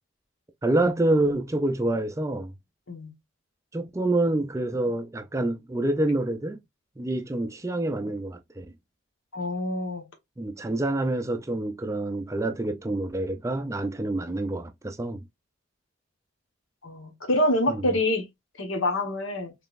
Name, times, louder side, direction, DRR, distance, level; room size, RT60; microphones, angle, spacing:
voice 1, 0.6-2.5 3.7-6.6 7.0-8.7 10.4-15.2 17.7-17.9, right 2 dB, 15° right, 0.3 m, -27 dB
voice 2, 9.3-10.1 16.8-18.2 18.6-19.5, left 1 dB, 75° left, 1.2 m, -26 dB
3.8 x 3.2 x 2.4 m
head